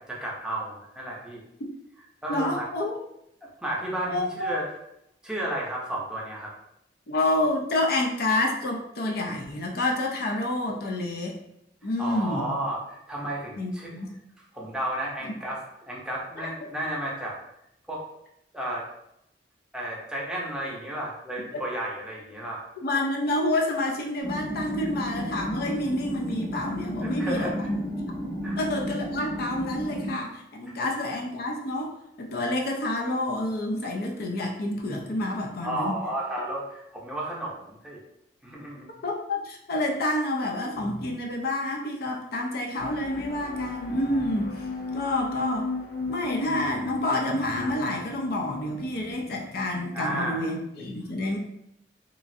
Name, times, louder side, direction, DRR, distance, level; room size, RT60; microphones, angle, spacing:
voice 1, 0.0-1.4 2.2-2.7 3.4-4.7 5.2-6.5 12.0-13.9 14.5-17.4 17.9-18.0 18.5-18.8 19.7-22.6 27.0-27.7 28.4-28.6 30.7-30.8 35.6-38.0 38.4-38.9 49.9-50.5, right 1 dB, 5° right, -4 dB, 0.6 m, -33 dB
voice 2, 2.3-3.0 4.1-4.5 7.1-11.4 11.8-12.6 13.6-14.1 16.4-16.5 21.5-21.6 22.8-27.8 28.6-36.0 39.0-44.7 44.9-45.7 46.1-51.4, left 1 dB, 60° left, 1 dB, 0.4 m, -28 dB
sound 1, 24.2-30.1, equal, 30° left, 1.2 m, -33 dB
sound 2, 40.4-41.6 42.6-42.9 43.4-49.8, right 1 dB, 55° right, 0.5 m, -47 dB
sound 3, 42.8-50.3, left 3 dB, 80° left, 1.2 m, -36 dB
3.0 x 2.4 x 2.6 m, 0.79 s
head